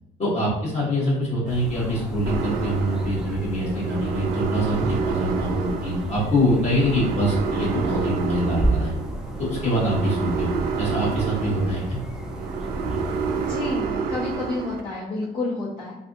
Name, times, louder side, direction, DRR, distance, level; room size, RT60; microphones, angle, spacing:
voice 1, 0.2-8.9 9.4-12.0, equal, 40° left, -6 dB, 1.3 m, -24 dB
sound 1, 1.5-13.6, right 1 dB, 5° right, 0.4 m, -32 dB
sound 2, 2.3-14.8, right 5 dB, 65° right, 0.4 m, -29 dB
voice 2, 13.3-16.0, left 2 dB, 60° left, -9 dB, 1.0 m, -30 dB
3.3 x 2.4 x 2.6 m, 0.89 s
cardioid pair, 110°, 17 cm